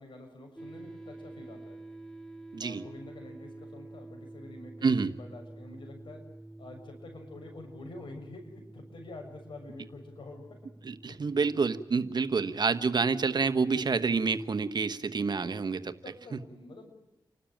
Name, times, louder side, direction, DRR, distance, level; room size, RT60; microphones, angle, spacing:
voice 1, 0.0-1.8 2.6-6.2 6.6-10.4 16.0-16.9, left 2 dB, 80° left, 3 dB, 6.7 m, -47 dB
sound 1, 0.6-15.8, right 2 dB, 5° left, 4.2 m, -49 dB
voice 2, 2.5-2.8 4.8-5.1 10.8-15.9, right 4 dB, 60° right, 11 dB, 1.2 m, -28 dB
29.5 x 12.5 x 8.9 m, 0.97 s
cardioid pair, 65°, 8 cm